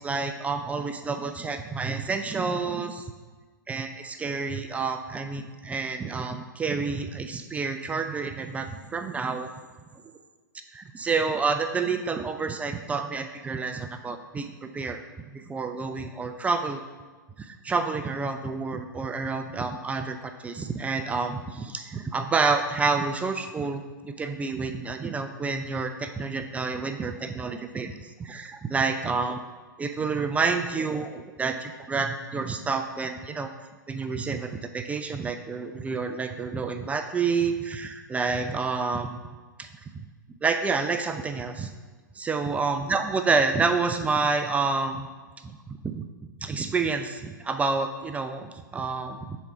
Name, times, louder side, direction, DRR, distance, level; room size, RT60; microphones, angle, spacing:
voice 1, 0.0-3.0 3.7-9.5 9.9-10.0 10.7-15.0 15.3-16.8 17.4-29.4 29.8-33.5 33.9-39.2 39.6-39.7 40.4-41.7 42.2-45.1 45.4-46.0 46.4-49.4, right 4 dB, 15° right, 7 dB, 0.3 m, -29 dB
7.0 x 3.6 x 4.3 m, 1.3 s
figure-of-eight pair, 100°, 11 cm